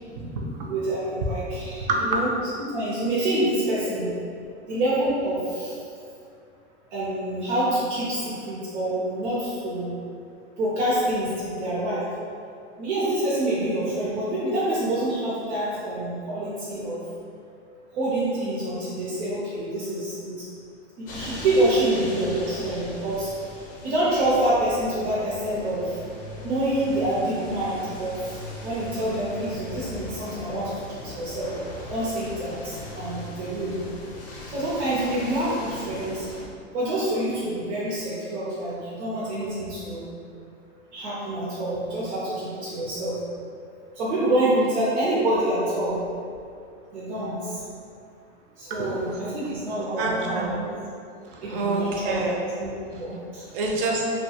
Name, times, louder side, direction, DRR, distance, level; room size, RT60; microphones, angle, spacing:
voice 1, 0.1-0.6 1.9-2.0 48.7-48.9 50.0-50.7 51.3-52.4 53.5-54.2, right 3 dB, 50° right, -1 dB, 0.5 m, -27 dB
voice 2, 0.7-2.3 2.6-4.1 4.7-5.7 6.9-9.9 10.6-12.0 12.8-17.0 17.9-20.4 21.0-23.3 23.8-25.9 26.4-28.2 28.6-31.5 31.9-33.8 34.5-36.3 36.7-40.1 40.9-43.2 44.0-46.0 46.9-47.5 48.6-50.6 51.4-53.4, right 1 dB, 85° right, -9 dB, 0.8 m, -26 dB
sound 1, 21.0-36.5, left 2 dB, 25° left, 0.5 m, -39 dB
2.7 x 2.2 x 2.8 m, 2.4 s
supercardioid pair, 145°, 33 cm